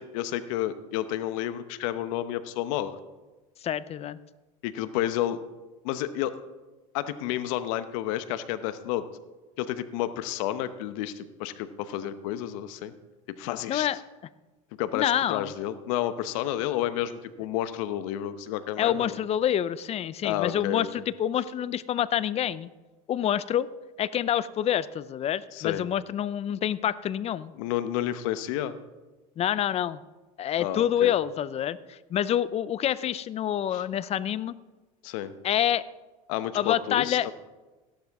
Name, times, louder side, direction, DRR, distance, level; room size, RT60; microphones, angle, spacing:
voice 1, 0.0-3.0 4.6-5.4 5.8-6.3 6.9-9.0 9.6-12.9 13.4-13.9 14.8-19.2 20.2-20.9 25.5-25.8 27.6-28.7 30.6-31.1 33.7-33.8 35.0-35.3 36.3-37.3, left 12 dB, 75° left, 12 dB, 0.9 m, -30 dB
voice 2, 3.6-4.2 13.7-14.0 14.9-15.5 18.8-22.7 23.1-23.7 24.0-27.5 29.4-30.0 30.4-34.5 35.4-35.8 36.5-37.3, left 10 dB, 35° left, 18 dB, 0.5 m, -27 dB
15.5 x 11.5 x 3.6 m, 1.2 s
supercardioid pair, 100°, 17 cm